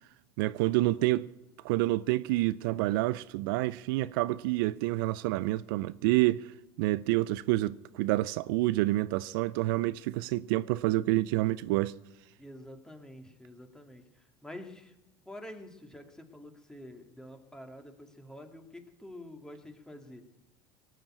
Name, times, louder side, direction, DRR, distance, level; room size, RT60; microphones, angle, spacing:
voice 1, 0.4-1.3 1.6-6.5 6.8-11.9, right 18 dB, 70° right, 0.4 m, -28 dB
voice 2, 12.4-14.9 15.3-20.2, left 1 dB, 5° left, 2.4 m, -48 dB
18.5 x 7.3 x 8.8 m
hypercardioid pair, 80°, 12 cm